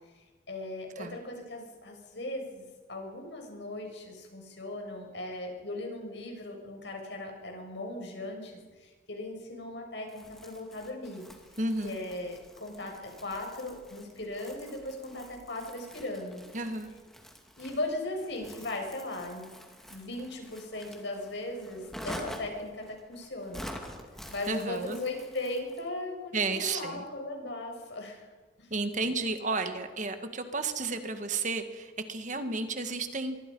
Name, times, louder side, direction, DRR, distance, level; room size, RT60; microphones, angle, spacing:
voice 1, 0.5-11.2 11.8-16.4 17.6-19.5 19.9-23.8 24.3-28.2 28.6-28.7, left 2 dB, 70° left, 2 dB, 6.7 m, -38 dB
Crumpling crinkling, 10.1-25.9, equal, ahead, 2.7 m, -47 dB
voice 2, 11.6-12.0 16.5-16.9 24.5-25.0 26.3-27.0 28.7-33.4, right 3 dB, 40° right, 7 dB, 1.7 m, -32 dB
25.0 x 24.0 x 5.5 m, 1.4 s
head